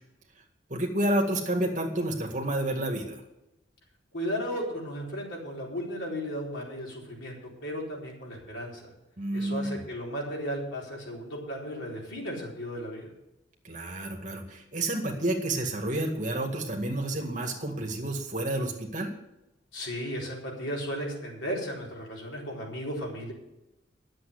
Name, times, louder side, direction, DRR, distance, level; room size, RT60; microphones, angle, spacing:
voice 1, 0.7-3.2 9.2-9.8 13.6-19.1, right 1 dB, 45° right, 2 dB, 2.0 m, -30 dB
voice 2, 4.1-8.8 9.3-13.1 19.7-23.3, equal, 85° left, -3 dB, 4.3 m, -35 dB
11.0 x 7.7 x 8.2 m, 0.92 s
head